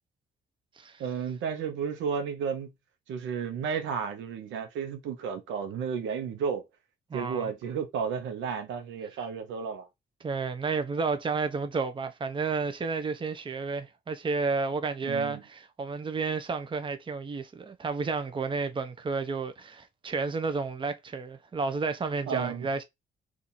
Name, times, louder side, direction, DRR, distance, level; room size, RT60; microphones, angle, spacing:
voice 1, 1.0-2.7 3.1-6.6 7.1-9.9 15.0-15.4 22.3-22.7, right 6 dB, 80° right, 0.8 m, -32 dB
voice 2, 7.1-7.5 10.2-22.8, right 4 dB, 25° right, 0.6 m, -31 dB
2.8 x 2.5 x 3.9 m
supercardioid pair, 60°, 19 cm